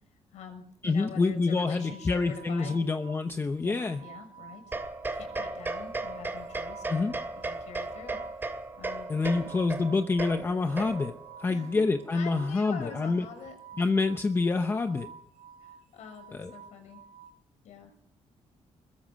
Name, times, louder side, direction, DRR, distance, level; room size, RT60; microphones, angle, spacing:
voice 1, 0.3-2.8 3.6-4.8 5.1-8.2 8.8-9.5 11.5-11.8 12.1-13.9 15.6-17.0 17.6-18.1, left 6 dB, 85° left, 6 dB, 6.5 m, -45 dB
voice 2, 0.8-4.0 6.9-7.1 9.1-11.1 11.4-13.2 13.8-15.1 16.3-16.5, left 3 dB, 20° left, 7 dB, 0.8 m, -27 dB
sound 1, 1.6-17.3, right 7 dB, 90° right, 3.8 m, -51 dB
sound 2, 4.7-11.3, right 2 dB, 20° right, 2.4 m, -36 dB
22.5 x 21.0 x 6.4 m, 0.71 s
cardioid pair, 170°, 12 cm